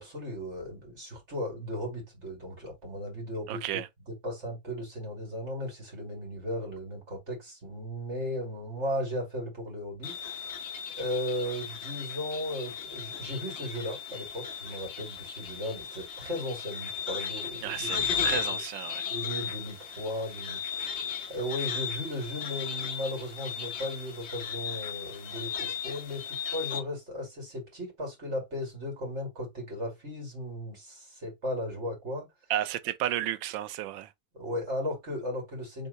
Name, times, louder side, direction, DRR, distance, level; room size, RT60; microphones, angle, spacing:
voice 1, 0.0-3.8 4.1-10.6 11.0-18.6 19.1-21.0 21.3-32.3 34.3-35.9, left 1 dB, 35° right, 2.7 m, -36 dB
voice 2, 3.5-3.9 17.6-19.1 32.5-34.1, right 13 dB, 75° right, 1.3 m, -32 dB
sound 1, 10.0-26.8, left 7 dB, 55° left, 0.7 m, -36 dB
3.6 x 3.5 x 3.8 m
omnidirectional pair, 2.2 m